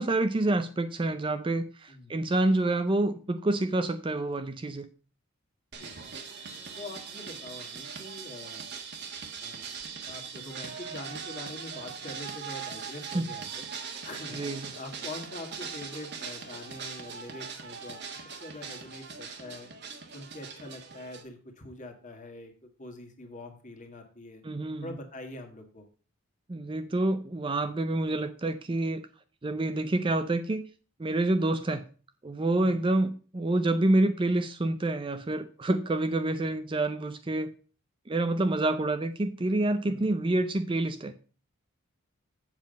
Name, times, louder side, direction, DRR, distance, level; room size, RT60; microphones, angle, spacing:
voice 1, 0.0-4.9 13.1-13.3 14.3-14.7 24.4-24.9 26.5-29.0 29.4-30.6 31.0-31.8 32.2-37.5 38.1-41.1, right 2 dB, 25° right, 9 dB, 0.5 m, -27 dB
nyc washjazzsnip mono, 5.7-21.2, right 6 dB, 50° right, 1.4 m, -41 dB
voice 2, 6.8-8.7 9.4-9.6 10.1-13.7 14.0-14.4 14.8-18.0 18.4-19.7 20.1-22.5 22.8-24.4 24.8-25.9 32.6-32.8 39.8-40.0, left 2 dB, 35° left, 4 dB, 1.7 m, -44 dB
7.3 x 7.3 x 5.2 m, 0.38 s
head